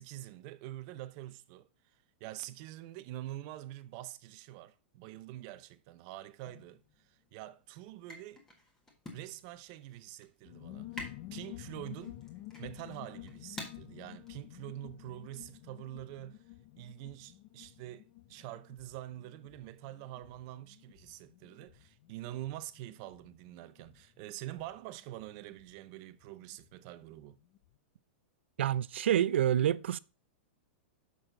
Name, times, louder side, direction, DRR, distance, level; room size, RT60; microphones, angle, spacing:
voice 1, 0.0-1.7 2.2-8.4 9.1-12.2 12.6-16.4 16.8-27.4, right 14 dB, 35° right, 0.5 m, -46 dB
sound 1, 6.4-15.2, left 1 dB, 10° left, 1.5 m, -51 dB
sound 2, 10.4-26.7 27.0-27.1 27.3-27.7, left 16 dB, 35° left, 0.5 m, -51 dB
voice 2, 28.6-30.0, right 11 dB, 90° right, 0.4 m, -27 dB
6.6 x 6.2 x 3.9 m
supercardioid pair, 170°, 6 cm